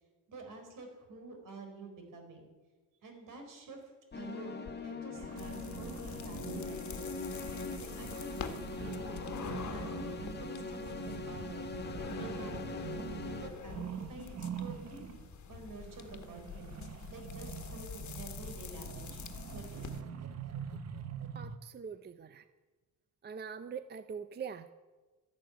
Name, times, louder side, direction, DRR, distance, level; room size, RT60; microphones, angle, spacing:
voice 1, 0.3-2.5 3.0-7.1 7.5-9.0 9.4-11.7 12.0-12.6 13.1-15.0 15.5-19.2 19.5-20.0, right 3 dB, 65° right, 4 dB, 4.6 m, -49 dB
sound 1, 4.1-13.5, left 3 dB, 30° left, 1.7 m, -42 dB
sound 2, 5.2-15.3 15.7-21.6, right 8 dB, 50° right, 0.9 m, -45 dB
sound 3, 5.4-20.0, left 7 dB, 55° left, 1.5 m, -46 dB
voice 2, 21.4-22.4 23.2-24.7, right 6 dB, 30° right, 12 dB, 0.5 m, -43 dB
13.5 x 11.5 x 9.1 m, 1.3 s
wide cardioid pair, 160°, 34 cm